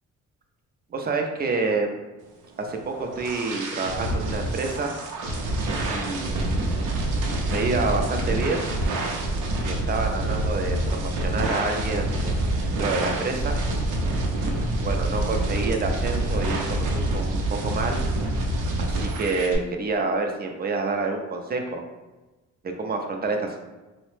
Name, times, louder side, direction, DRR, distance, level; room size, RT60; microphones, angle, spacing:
voice 1, 0.9-1.9 2.6-4.9 5.9-6.7 7.5-8.6 9.6-13.6 14.4-18.0 18.8-21.8 22.6-23.6, right 3 dB, 30° right, 4 dB, 0.4 m, -28 dB
sound 1, 2.6-19.6, right 1 dB, 80° right, 0.6 m, -27 dB
2.8 x 2.1 x 3.1 m, 1.1 s
cardioid pair, 90°, 30 cm